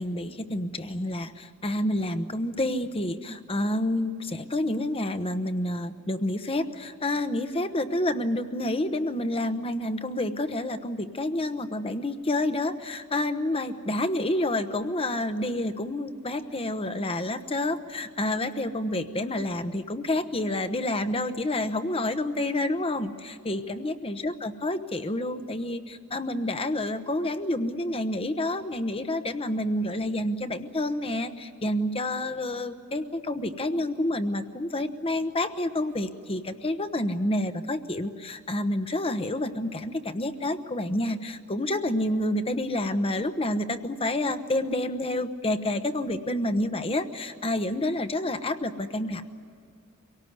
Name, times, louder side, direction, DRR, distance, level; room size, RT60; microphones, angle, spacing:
voice 1, 0.0-49.2, left 1 dB, 25° left, 9 dB, 1.0 m, -29 dB
24.5 x 18.0 x 9.5 m, 2.3 s
head